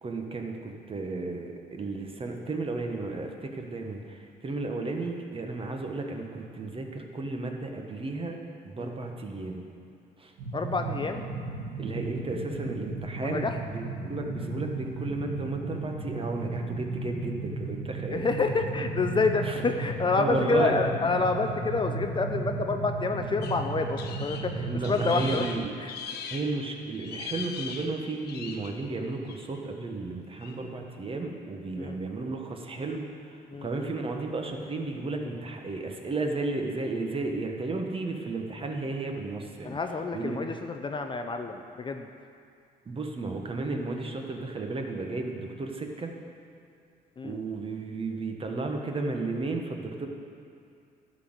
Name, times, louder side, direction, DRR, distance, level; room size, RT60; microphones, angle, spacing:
voice 1, 0.0-4.2 4.4-8.4 8.6-9.6 10.2-10.3 11.8-13.5 13.7-18.2 19.4-19.5 20.2-20.8 24.6-25.7 26.3-33.1 33.6-39.8 40.1-40.4 42.9-46.1 47.2-50.1, right 3 dB, 30° right, 3 dB, 1.3 m, -33 dB
sound 1, 10.4-25.5, right 3 dB, 80° right, 2.5 m, -35 dB
voice 2, 10.5-11.2 13.2-13.6 18.1-25.9 31.8-32.0 33.5-33.7 39.6-42.1 47.2-47.4, left 4 dB, 30° left, 5 dB, 0.6 m, -28 dB
sound 2, 23.4-26.6 26.9-28.8 29.3-29.6 30.4-30.6, left 6 dB, 70° left, 0.8 m, -40 dB
11.5 x 4.2 x 7.9 m, 2.4 s
cardioid pair, 80°, 17 cm